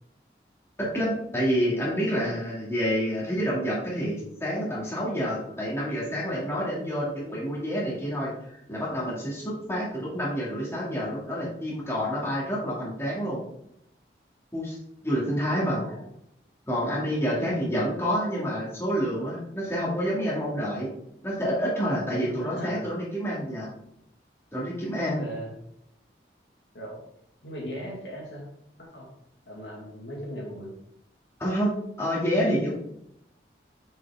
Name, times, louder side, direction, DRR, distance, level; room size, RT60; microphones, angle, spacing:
voice 1, 0.8-8.3 8.7-13.4 14.5-14.8 15.0-15.8 16.7-20.9 21.2-23.7 24.5-25.2 31.4-32.7, equal, 15° left, -6 dB, 2.1 m, -28 dB
voice 2, 15.7-16.1 22.2-22.8 24.9-25.5 26.7-27.1 27.4-28.5 28.8-29.1 29.5-30.7, equal, 85° left, -1 dB, 1.9 m, -38 dB
6.4 x 5.4 x 3.5 m, 0.76 s
head